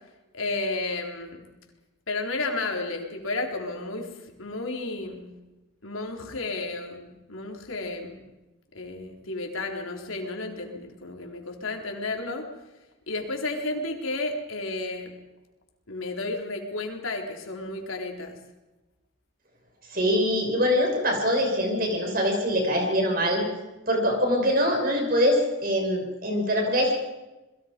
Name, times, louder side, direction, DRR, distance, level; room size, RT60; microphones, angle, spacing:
voice 1, 0.3-1.4 2.1-4.1 4.4-5.3 5.8-8.2 8.7-12.5 13.1-15.1 15.9-18.4, left 2 dB, 85° left, 2 dB, 4.0 m, -32 dB
voice 2, 19.9-23.4 23.9-26.9, equal, 45° right, 2 dB, 6.4 m, -23 dB
29.0 x 21.5 x 5.3 m, 1.1 s
head